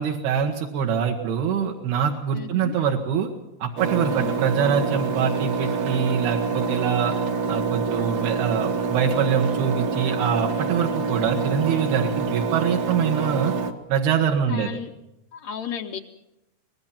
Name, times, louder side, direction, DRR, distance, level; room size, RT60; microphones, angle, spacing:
voice 1, 0.0-3.3 3.6-7.1 7.5-13.5 13.9-14.7, right 7 dB, 80° right, 1 dB, 3.4 m, -24 dB
voice 2, 2.3-2.8 4.1-4.4 11.2-11.4 14.5-14.9 15.3-16.0, left 8 dB, 90° left, 2 dB, 1.5 m, -34 dB
Engine, 3.8-13.7, right 5 dB, 60° right, 1.8 m, -26 dB
25.0 x 19.5 x 5.9 m, 0.87 s
omnidirectional pair, 4.5 m